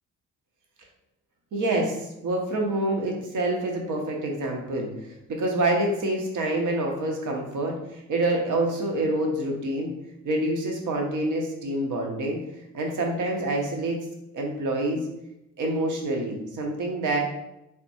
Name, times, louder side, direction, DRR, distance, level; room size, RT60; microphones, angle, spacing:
voice 1, 1.5-4.9 5.3-9.9 10.2-12.4 12.7-14.0 14.3-15.0 15.6-17.2, right 1 dB, 45° right, 0 dB, 0.9 m, -27 dB
4.0 x 2.2 x 2.9 m, 0.87 s
figure-of-eight pair, 45°, 43 cm